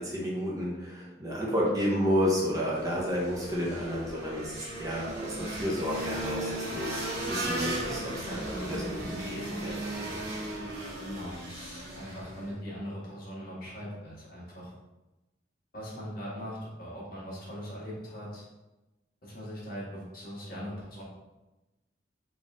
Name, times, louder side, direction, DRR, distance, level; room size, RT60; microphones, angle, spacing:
voice 1, 0.0-10.2, equal, 20° right, -5 dB, 0.6 m, -31 dB
sound 1, 2.7-12.5, right 1 dB, 60° right, 1.1 m, -36 dB
voice 2, 11.0-14.7 15.7-18.5 19.2-21.0, equal, 50° left, -7 dB, 1.4 m, -40 dB
4.1 x 2.5 x 3.5 m, 1.0 s
head